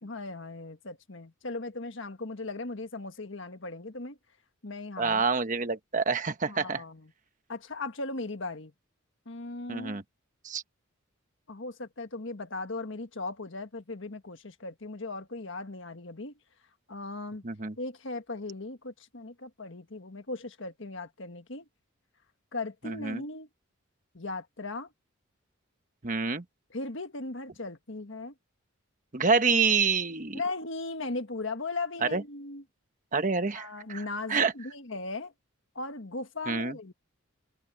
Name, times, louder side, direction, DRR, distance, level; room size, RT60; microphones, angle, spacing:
voice 1, 0.0-4.2 4.6-5.2 6.4-7.1 7.5-8.7 9.2-10.0 11.5-16.3 16.9-17.4 17.8-21.7 22.5-23.5 24.1-24.9 26.7-28.3 30.3-32.6 33.5-35.3 35.7-36.9, left 3 dB, 60° left, 1.6 m, -38 dB
voice 2, 5.0-6.8 9.7-10.0 10.4-10.6 17.4-17.7 22.8-23.2 26.0-26.4 29.1-30.4 32.0-32.2 33.1-34.5 36.5-36.7, right 4 dB, 35° right, 1.2 m, -27 dB
head